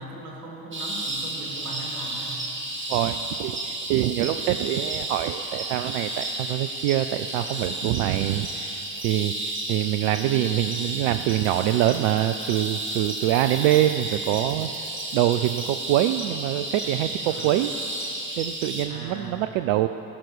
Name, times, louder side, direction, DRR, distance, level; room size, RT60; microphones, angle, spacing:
voice 1, 0.0-2.4 17.2-17.6 18.8-19.5, right 2 dB, 80° right, -1 dB, 1.9 m, -39 dB
sound 1, 0.7-18.8, right 2 dB, 25° right, 1.9 m, -32 dB
voice 2, 2.9-17.7 18.4-19.9, right 14 dB, 65° right, 9 dB, 0.5 m, -25 dB
17.0 x 6.2 x 6.4 m, 2.9 s
figure-of-eight pair, 50°, 44 cm